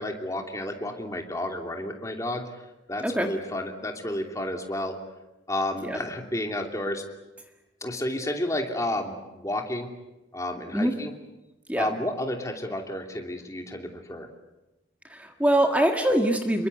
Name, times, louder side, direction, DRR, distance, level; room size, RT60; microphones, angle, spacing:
voice 1, 0.0-2.5 2.9-5.0 5.5-7.0 7.8-9.9 10.3-11.1 11.8-14.3, left 1 dB, 15° left, 3 dB, 2.9 m, -31 dB
voice 2, 15.1-16.7, right 1 dB, 10° right, 4 dB, 1.7 m, -23 dB
27.5 x 22.5 x 8.3 m, 1.0 s
head